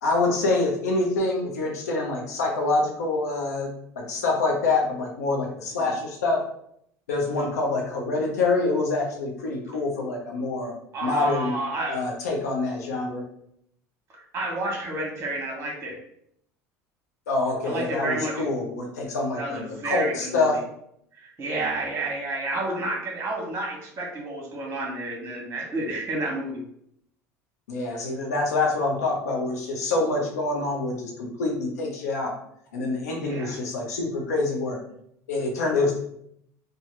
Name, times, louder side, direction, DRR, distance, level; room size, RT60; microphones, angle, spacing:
voice 1, 0.0-6.4 7.1-10.7 11.0-11.5 11.9-13.2 17.3-20.6 27.7-32.3 32.7-34.8 35.3-36.0, left 3 dB, 85° left, 0 dB, 0.8 m, -26 dB
voice 2, 10.9-12.0 14.1-16.0 17.6-18.4 19.4-20.6 21.1-26.6 33.2-33.6, right 2 dB, 30° right, 0 dB, 1.1 m, -30 dB
3.1 x 2.2 x 3.2 m, 0.72 s
hypercardioid pair, 75°, 8 cm